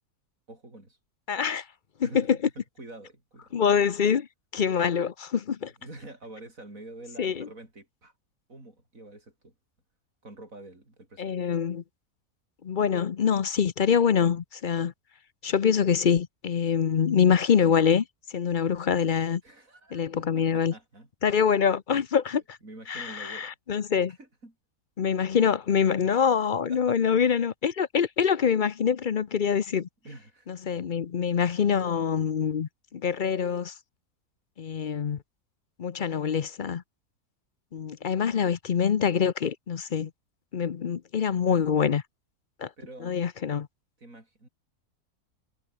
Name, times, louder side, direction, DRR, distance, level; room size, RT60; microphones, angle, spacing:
voice 1, 0.5-1.0 2.0-3.5 5.8-8.1 8.5-9.5 10.2-11.4 19.4-21.1 22.6-23.6 24.1-24.5 26.6-27.2 30.0-30.5 42.8-43.2 44.0-44.5, right 2 dB, 60° right, 7.3 m, -47 dB
voice 2, 1.3-1.6 2.0-2.4 3.5-4.3 4.5-5.7 7.2-7.5 11.2-11.8 12.6-14.9 15.4-18.0 18.3-19.4 19.9-20.7 21.2-22.6 22.9-24.1 25.0-29.9 30.5-33.7 34.6-35.2 35.8-36.8 37.7-40.1 40.5-42.0 42.6-42.7 43.0-43.7, left 7 dB, 45° left, 0.6 m, -25 dB
omnidirectional pair, 1.6 m